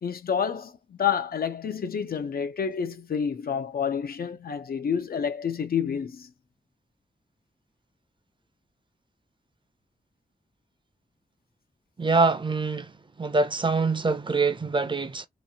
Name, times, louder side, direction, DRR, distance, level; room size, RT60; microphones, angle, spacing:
voice 1, 0.0-6.3, left 7 dB, 80° left, 0.6 m, -29 dB
voice 2, 12.0-12.9 13.2-15.3, right 3 dB, 30° right, 0.5 m, -24 dB
3.0 x 2.4 x 2.7 m
wide cardioid pair, 90°, 15 cm